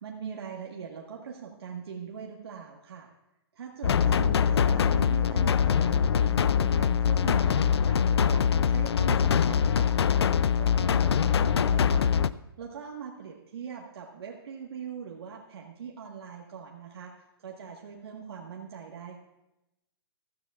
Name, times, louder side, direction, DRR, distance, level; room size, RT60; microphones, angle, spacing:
voice 1, 0.0-3.1 3.5-10.3 10.6-12.1 12.6-17.1 17.4-19.2, right 7 dB, 75° right, 0 dB, 1.5 m, -41 dB
sound 1, 3.8-12.3, left 7 dB, 85° left, 0.4 m, -23 dB
15.5 x 13.0 x 2.4 m, 0.92 s
hypercardioid pair, 140°, 13 cm